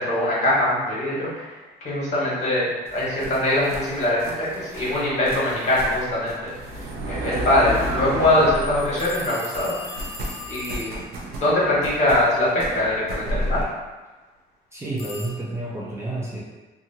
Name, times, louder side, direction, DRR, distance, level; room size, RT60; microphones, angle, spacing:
voice 1, 0.0-1.5 1.8-6.5 7.1-9.9 10.5-13.6, left 1 dB, 45° left, -7 dB, 1.4 m, -22 dB
sound 1, 2.9-9.3 9.5-13.6, right 1 dB, 70° right, 0.6 m, -32 dB
sound 2, 9.0-11.1 15.0-15.3, left 3 dB, 65° left, 0.5 m, -37 dB
voice 2, 14.7-16.4, right 2 dB, 15° right, -6 dB, 0.5 m, -30 dB
2.8 x 2.4 x 2.7 m, 1.2 s
cardioid pair, 110°, 17 cm